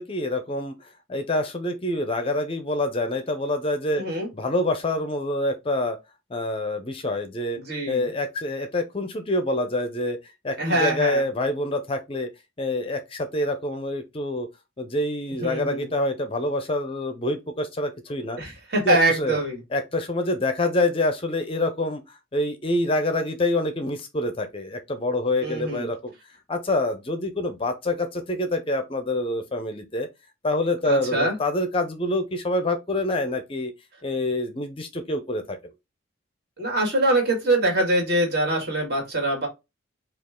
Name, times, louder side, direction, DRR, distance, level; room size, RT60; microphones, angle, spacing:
voice 1, 0.0-4.0 4.3-6.0 6.3-7.6 7.9-10.2 10.4-12.3 12.6-14.5 14.8-18.4 18.8-19.4 19.7-26.1 26.5-30.1 30.4-33.7 34.0-35.7, left 1 dB, 25° left, 0.5 m, -26 dB
voice 2, 4.0-4.3 7.6-8.0 10.6-11.2 15.4-15.9 18.4-19.6 25.4-25.9 30.8-31.4 36.6-39.5, right 1 dB, 50° right, 1.9 m, -24 dB
5.2 x 2.4 x 3.6 m
head